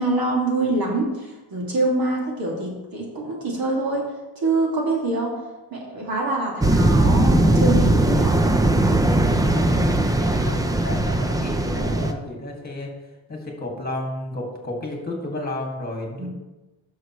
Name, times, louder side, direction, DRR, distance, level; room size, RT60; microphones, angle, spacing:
voice 1, 0.0-4.0 4.4-5.4 5.7-8.3 16.2-16.3, right 2 dB, 45° right, -2 dB, 2.3 m, -25 dB
sound 1, 6.6-12.1, right 1 dB, 10° right, 0.5 m, -19 dB
voice 2, 9.3-12.9 13.3-16.3, left 2 dB, 20° left, 1 dB, 2.1 m, -32 dB
11.0 x 6.7 x 3.1 m, 1.1 s
cardioid pair, 125°, 47 cm